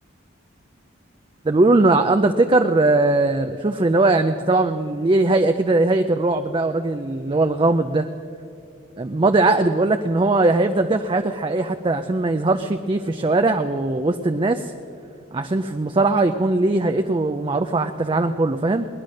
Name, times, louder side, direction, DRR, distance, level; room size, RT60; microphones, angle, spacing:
voice 1, 1.4-8.1 9.0-14.7 15.3-18.9, right 2 dB, 25° right, 7 dB, 0.4 m, -20 dB
19.5 x 10.5 x 6.4 m, 2.4 s
head